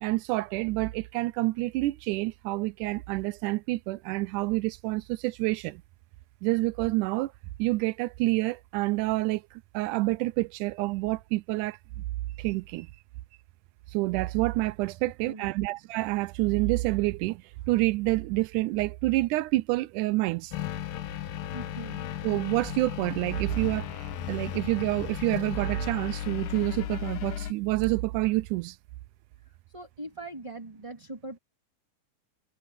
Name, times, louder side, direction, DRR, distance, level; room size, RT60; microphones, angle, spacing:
voice 1, 0.0-5.8 6.4-7.3 7.6-9.4 9.7-11.8 12.4-12.9 13.9-17.4 17.7-20.5 22.2-23.9 24.3-28.8, right 19 dB, 80° right, 1.9 m, -28 dB
voice 2, 15.2-15.7 21.5-22.1 29.7-31.4, right 2 dB, 10° right, 1.9 m, -41 dB
sound 1, 20.5-27.5, left 10 dB, 80° left, 2.9 m, -35 dB
omnidirectional pair, 3.9 m